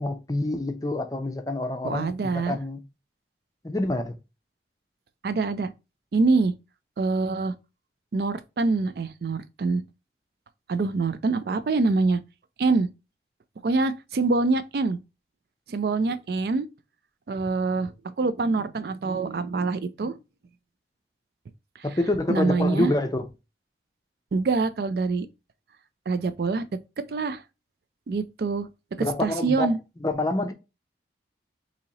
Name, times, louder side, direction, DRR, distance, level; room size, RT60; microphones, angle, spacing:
voice 1, 0.0-2.8 3.6-4.1 21.8-23.3 29.0-30.5, left 2 dB, 20° left, 0.5 m, -27 dB
voice 2, 1.8-2.6 5.2-5.7 6.1-6.5 7.0-7.5 8.1-9.8 10.7-12.2 12.6-12.9 13.6-15.0 15.7-16.7 17.3-20.2 22.3-22.9 24.3-25.3 26.1-26.6 27.1-27.4 28.1-28.7 29.2-29.8, right 3 dB, 55° right, 0.4 m, -25 dB
4.0 x 2.8 x 2.8 m
head